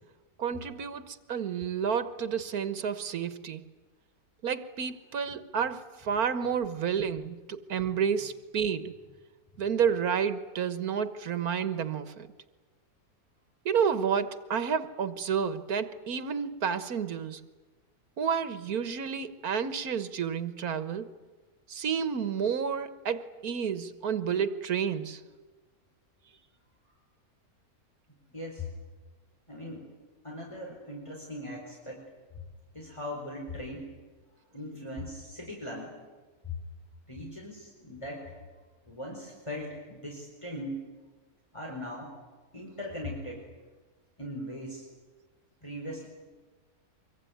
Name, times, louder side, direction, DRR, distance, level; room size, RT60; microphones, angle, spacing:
voice 1, 0.4-3.6 4.4-8.9 9.6-12.3 13.7-17.4 18.2-21.1 21.7-25.2, right 7 dB, 90° right, 12 dB, 1.8 m, -30 dB
voice 2, 28.3-28.7 29.5-29.9 30.2-32.0 32.7-33.9 34.5-36.0 37.1-38.4 38.9-40.8 41.5-42.2 42.5-43.5 44.2-44.9 45.6-46.1, left 1 dB, 20° left, -2 dB, 4.8 m, -39 dB
24.5 x 24.0 x 9.5 m, 1.3 s
omnidirectional pair, 1.5 m